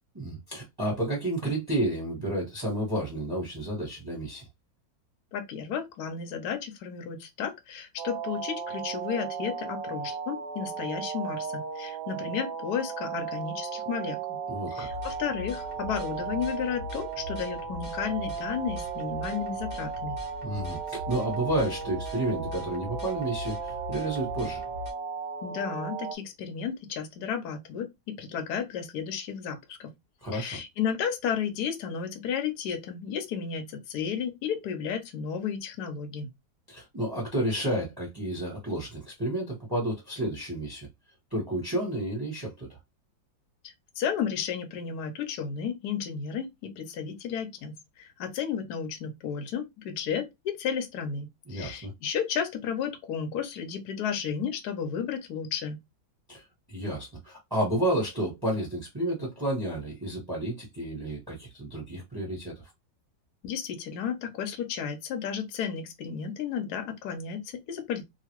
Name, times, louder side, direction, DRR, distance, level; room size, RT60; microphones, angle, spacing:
voice 1, 0.1-4.5 14.5-14.9 20.4-24.6 30.2-30.6 36.7-40.9 41.3-42.8 51.5-51.9 56.3-62.5, right 1 dB, 15° right, 1.0 m, -31 dB
voice 2, 5.3-14.4 14.7-20.2 25.4-29.9 30.3-36.3 43.6-55.8 63.4-68.0, left 7 dB, 65° left, 1.2 m, -33 dB
sound 1, 8.0-26.2, right 6 dB, 70° right, 0.8 m, -36 dB
sound 2, 14.8-24.9, left 4 dB, 40° left, 0.9 m, -42 dB
2.9 x 2.6 x 2.9 m
omnidirectional pair, 2.1 m